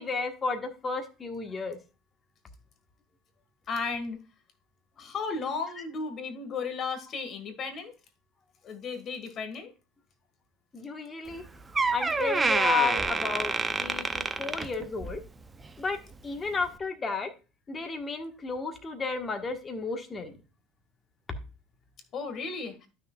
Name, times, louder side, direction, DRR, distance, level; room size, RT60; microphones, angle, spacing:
voice 1, 0.0-1.8 10.7-11.4 11.9-15.2 15.8-17.3 17.7-20.4, left 4 dB, 20° left, 1.4 m, -32 dB
voice 2, 3.7-4.2 5.0-7.9 8.6-9.7 22.1-22.8, left 4 dB, 40° left, 1.8 m, -34 dB
Door, 11.3-11.4 11.7-15.2 15.6-15.9 16.6-16.7, right 3 dB, 15° right, 0.6 m, -28 dB
12.0 x 6.3 x 2.4 m
supercardioid pair, 125°, 0 cm